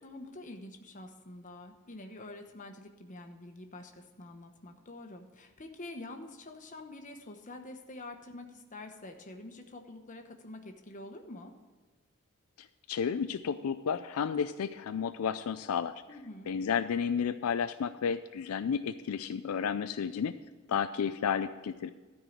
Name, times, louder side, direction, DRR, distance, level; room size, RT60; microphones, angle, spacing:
voice 1, 0.0-11.5 16.1-16.5, left 2 dB, 35° left, 5 dB, 1.0 m, -47 dB
voice 2, 12.9-16.0 16.5-20.4 20.7-21.9, left 7 dB, 80° left, 11 dB, 0.4 m, -32 dB
13.0 x 4.6 x 8.6 m, 1.3 s
head